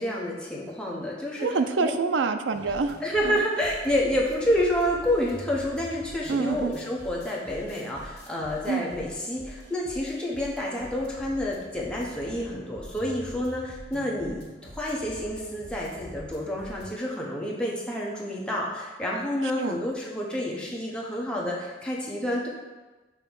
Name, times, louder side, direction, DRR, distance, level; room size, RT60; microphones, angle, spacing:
voice 1, 0.0-1.5 1.8-2.0 3.0-22.5, left 1 dB, 5° left, -4 dB, 1.0 m, -29 dB
voice 2, 1.4-3.0 3.2-3.4 6.3-6.7 8.7-8.8 19.6-19.8, right 4 dB, 90° right, 8 dB, 0.4 m, -26 dB
sound 1, 2.5-16.9, equal, 55° left, 1.5 m, -45 dB
6.3 x 3.0 x 5.3 m, 1.2 s
head